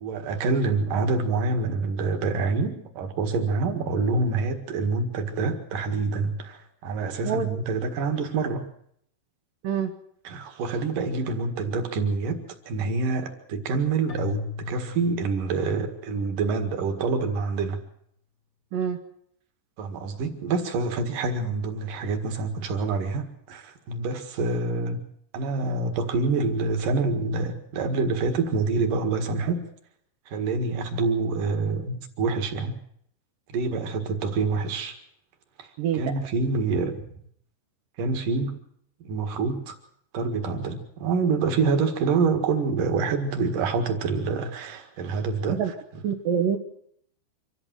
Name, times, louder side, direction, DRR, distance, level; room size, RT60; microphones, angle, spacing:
voice 1, 0.0-8.7 10.2-17.8 19.8-25.0 25.3-29.7 30.3-32.8 33.5-35.0 35.6-37.0 38.0-38.6 39.0-39.8 40.1-45.6, right 4 dB, 55° right, 6 dB, 2.9 m, -26 dB
Keyboard (musical), 14.1-16.3, left 7 dB, 40° left, 1.7 m, -37 dB
voice 2, 35.8-36.2 45.5-45.7 46.0-46.6, right 8 dB, 70° right, 2 dB, 2.2 m, -26 dB
25.5 x 14.0 x 7.6 m, 0.68 s
omnidirectional pair, 5.6 m